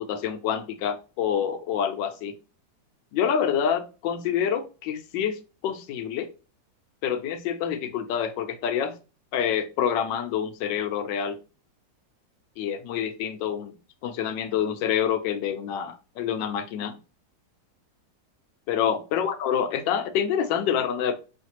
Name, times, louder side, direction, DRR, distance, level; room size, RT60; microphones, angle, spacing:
voice 1, 0.0-2.3 3.1-5.4 5.6-6.3 7.0-8.9 9.3-11.4 12.6-13.7 14.0-17.0 18.7-21.2, left 8 dB, 80° left, 9 dB, 1.3 m, -27 dB
5.1 x 3.2 x 2.8 m, 0.33 s
omnidirectional pair, 2.0 m